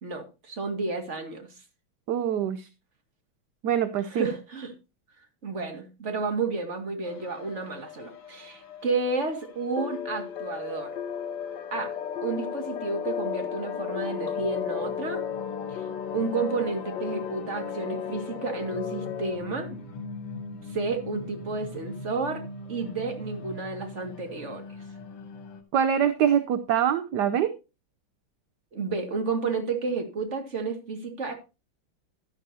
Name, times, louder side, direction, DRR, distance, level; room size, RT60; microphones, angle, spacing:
voice 1, 0.0-1.5 4.1-4.7 5.4-10.9 11.7-15.2 15.7-15.8 16.1-19.8 20.7-24.6 28.7-31.3, right 4 dB, 35° right, 5 dB, 2.3 m, -31 dB
voice 2, 2.1-2.7 3.6-4.2 25.7-27.5, right 9 dB, 65° right, 11 dB, 1.2 m, -24 dB
sound 1, 7.1-25.6, left 4 dB, 85° left, 2.4 m, -41 dB
sound 2, 9.8-19.4, left 8 dB, 65° left, 1.3 m, -34 dB
12.0 x 11.0 x 2.8 m, 0.28 s
omnidirectional pair, 2.4 m